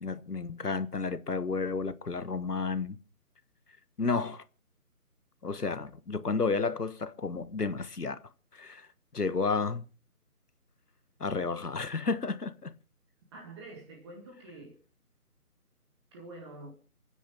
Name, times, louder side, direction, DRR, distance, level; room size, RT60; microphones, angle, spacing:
voice 1, 0.0-3.0 4.0-4.4 5.4-8.2 8.5-8.9 9.1-9.8 11.2-12.7, left 4 dB, 85° left, 1.5 m, -31 dB
voice 2, 13.3-14.8 16.1-16.7, right 2 dB, 20° right, 2.4 m, -46 dB
28.0 x 10.0 x 3.5 m
figure-of-eight pair, 155°, 45 cm